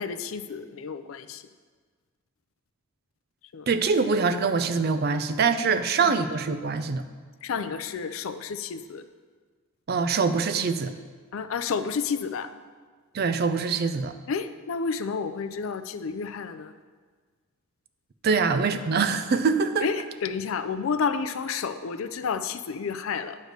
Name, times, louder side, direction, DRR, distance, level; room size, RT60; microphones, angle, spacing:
voice 1, 0.0-1.4 3.5-3.7 5.7-6.1 7.4-9.0 11.3-12.5 14.3-16.7 18.3-18.4 19.8-23.4, left 5 dB, 75° left, 10 dB, 0.4 m, -31 dB
voice 2, 3.7-7.0 9.9-10.9 13.1-14.1 18.2-19.9, right 5 dB, 50° right, 10 dB, 0.4 m, -24 dB
9.4 x 3.2 x 6.5 m, 1.5 s
head